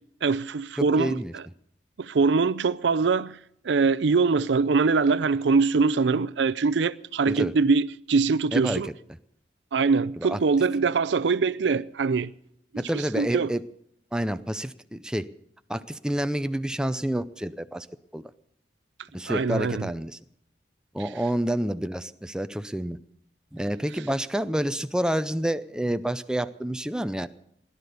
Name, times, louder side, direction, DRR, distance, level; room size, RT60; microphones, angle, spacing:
voice 1, 0.2-1.2 2.0-3.4 3.6-8.9 9.7-12.3 13.2-13.5 19.3-19.9, right 4 dB, 75° right, 0.5 m, -23 dB
voice 2, 0.8-1.3 7.3-7.5 8.5-8.9 10.2-10.4 12.8-13.6 14.1-15.3 15.7-17.9 18.1-18.3 19.1-20.2 20.9-23.0 23.5-27.3, right 1 dB, 5° right, 0.5 m, -28 dB
17.5 x 11.0 x 6.8 m
head